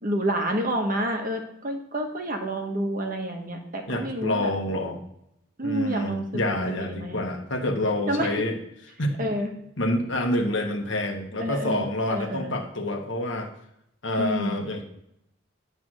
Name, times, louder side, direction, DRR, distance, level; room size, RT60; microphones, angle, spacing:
voice 1, 0.0-4.5 5.6-7.2 8.1-8.3 9.2-9.5 11.4-12.6 14.2-14.6, right 1 dB, 40° right, 3 dB, 1.1 m, -29 dB
voice 2, 3.9-5.0 5.6-8.6 9.0-9.2 9.8-13.5 14.0-14.8, left 1 dB, 65° left, 3 dB, 1.3 m, -27 dB
9.3 x 3.4 x 6.1 m, 0.81 s
head